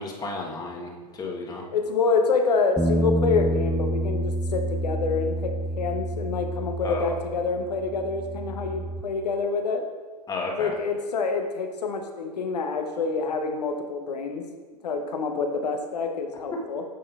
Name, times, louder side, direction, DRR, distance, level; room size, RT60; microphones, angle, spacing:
voice 1, 0.0-1.6 6.8-7.1 10.3-10.7, left 3 dB, 20° left, 0 dB, 1.2 m, -33 dB
voice 2, 1.7-9.8 10.6-14.4 14.8-16.8, left 4 dB, 75° left, 5 dB, 0.9 m, -27 dB
sound 1, 2.8-9.0, right 1 dB, 5° right, 0.4 m, -28 dB
9.3 x 6.3 x 2.4 m, 1.4 s
hypercardioid pair, 100°, 21 cm